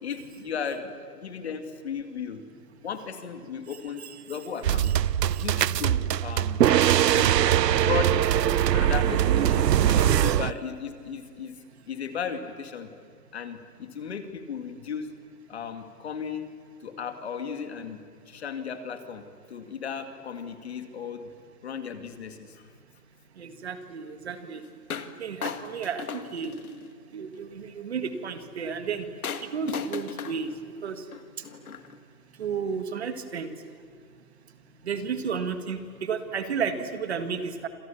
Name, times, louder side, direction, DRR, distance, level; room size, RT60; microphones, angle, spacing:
voice 1, 0.0-2.4 2.8-4.9 5.4-6.7 7.1-7.4 7.8-8.2 8.7-11.6 11.9-12.9 13.3-15.1 15.5-16.5 16.8-18.0 18.3-19.2 19.5-21.3 21.6-22.6, left 6 dB, 40° left, 7 dB, 2.3 m, -35 dB
sound 1, 4.6-10.5, right 11 dB, 80° right, 0.7 m, -22 dB
voice 2, 23.4-24.6 25.2-26.5 27.1-29.1 29.4-30.5 30.8-31.0 32.4-33.5 34.8-37.7, right 6 dB, 40° right, 8 dB, 1.9 m, -32 dB
Drop Bounce Plastic Bottle, 24.9-25.1 25.4-26.9 29.2-32.0, left 6 dB, 60° left, 2.0 m, -36 dB
28.5 x 27.5 x 7.2 m, 2.2 s
hypercardioid pair, 175°, 49 cm